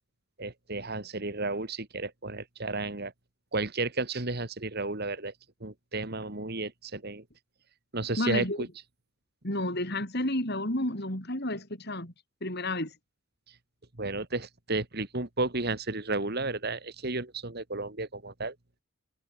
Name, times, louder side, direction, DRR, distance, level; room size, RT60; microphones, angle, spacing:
voice 1, 0.4-3.1 3.5-5.3 5.6-7.2 7.9-8.7 13.5-13.6 14.0-18.6, right 3 dB, 45° right, 2.2 m, -33 dB
voice 2, 8.2-8.6 9.4-12.1 12.4-12.9, left 1 dB, 45° left, 5.6 m, -31 dB
head